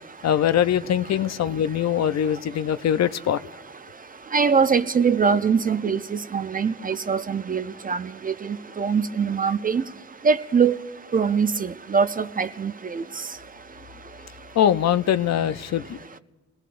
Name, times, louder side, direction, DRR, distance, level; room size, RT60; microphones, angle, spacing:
voice 1, 0.2-3.4 14.6-16.0, left 10 dB, 60° left, 0.5 m, -22 dB
voice 2, 4.3-9.8 10.2-10.8 11.1-13.0, right 6 dB, 30° right, 0.4 m, -23 dB
28.5 x 19.0 x 2.5 m
wide cardioid pair, 120°, 31 cm